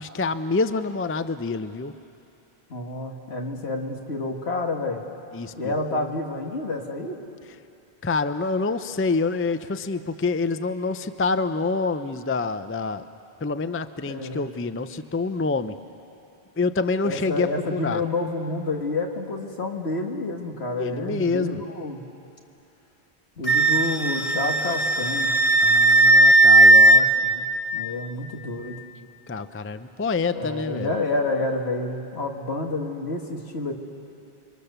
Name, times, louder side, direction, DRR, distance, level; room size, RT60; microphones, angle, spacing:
voice 1, 0.0-1.9 5.3-6.0 8.0-13.0 13.4-15.7 16.6-18.0 20.8-21.6 25.6-27.0 29.3-30.9, left 4 dB, 20° left, 11 dB, 0.4 m, -27 dB
voice 2, 2.7-5.0 5.6-7.2 14.1-14.5 17.0-22.0 23.4-25.3 26.7-27.4 27.7-28.8 30.4-33.7, left 2 dB, 75° left, 2 dB, 2.2 m, -29 dB
Wind instrument woodwind instrument, 23.5-27.0, right 2 dB, 35° left, 1.1 m, -16 dB
29.5 x 23.5 x 6.8 m, 2.7 s
omnidirectional pair, 1.1 m